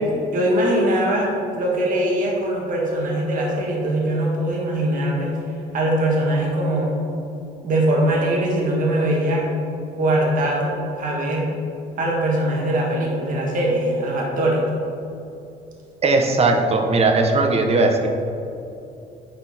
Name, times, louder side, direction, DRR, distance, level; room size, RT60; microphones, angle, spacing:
voice 1, 0.3-5.3 5.7-7.0 7.6-9.5 10.0-11.5 12.0-14.6, right 1 dB, 50° right, -2 dB, 1.6 m, -21 dB
voice 2, 16.0-18.1, right 3 dB, 35° right, 3 dB, 1.1 m, -18 dB
10.0 x 4.3 x 4.3 m, 2.7 s
cardioid pair, 110°, 17 cm